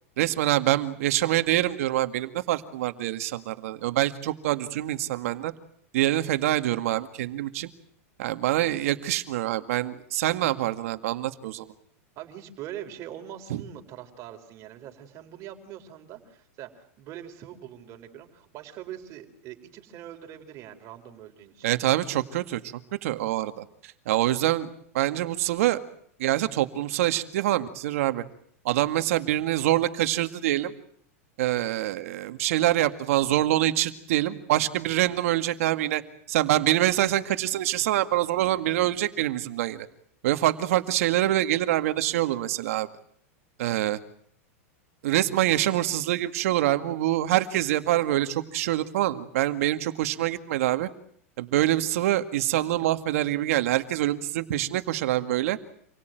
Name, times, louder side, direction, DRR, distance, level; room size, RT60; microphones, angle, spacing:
voice 1, 0.2-5.5 5.9-7.7 8.2-11.7 13.5-13.6 21.6-22.6 23.0-24.7 24.9-25.8 26.2-28.2 28.6-30.7 31.4-36.0 36.3-39.9 40.2-42.9 43.6-44.0 45.0-50.9 51.4-55.6, right 14 dB, 70° right, 9 dB, 2.0 m, -25 dB
voice 2, 12.2-21.7, right 11 dB, 40° right, 5 dB, 4.4 m, -43 dB
27.0 x 17.5 x 9.2 m, 0.66 s
supercardioid pair, 130°, 8 cm